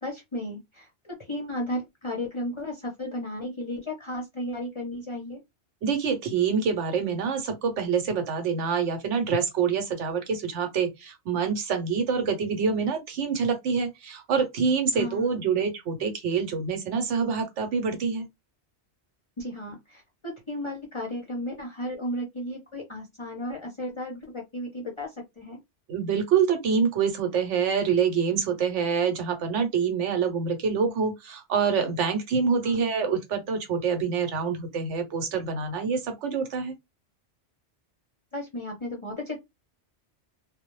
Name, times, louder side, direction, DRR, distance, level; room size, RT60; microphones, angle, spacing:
voice 1, 0.0-5.4 14.9-15.4 19.4-25.6 32.6-32.8 38.3-39.4, left 1 dB, 35° left, 0.5 m, -34 dB
voice 2, 5.8-18.3 25.9-36.7, right 6 dB, 85° right, 1.0 m, -26 dB
2.2 x 2.0 x 3.0 m
omnidirectional pair, 1.2 m